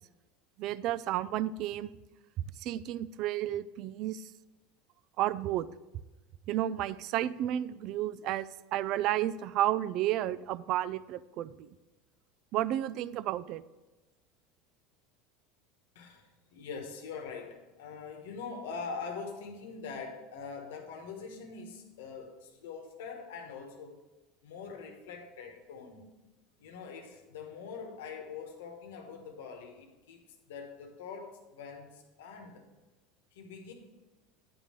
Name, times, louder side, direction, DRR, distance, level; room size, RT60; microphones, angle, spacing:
voice 1, 0.6-1.9 2.6-4.2 5.2-5.7 6.5-11.7 12.5-13.6, right 13 dB, 50° right, 16 dB, 0.3 m, -32 dB
voice 2, 15.9-24.0 24.4-26.1 26.6-30.2 30.5-32.7 33.3-33.7, left 5 dB, 90° left, 3 dB, 1.2 m, -43 dB
9.5 x 3.7 x 6.4 m, 1.1 s
supercardioid pair, 135°, 0 cm